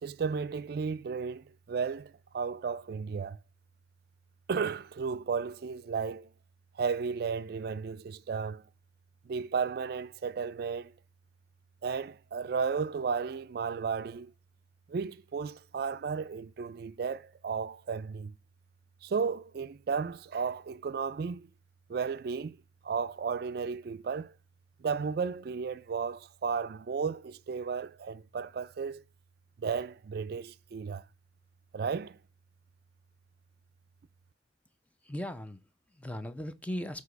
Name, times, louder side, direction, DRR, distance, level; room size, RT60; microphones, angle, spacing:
voice 1, 0.0-3.4 4.5-6.3 6.8-8.6 9.3-10.9 11.8-14.3 14.9-18.3 19.0-21.5 21.9-22.6 22.8-24.3 24.8-29.0 29.6-31.0 31.7-32.2, right 5 dB, 55° right, 0.4 m, -34 dB
voice 2, 35.0-37.0, left 1 dB, 10° left, 0.6 m, -38 dB
7.9 x 2.8 x 5.1 m
head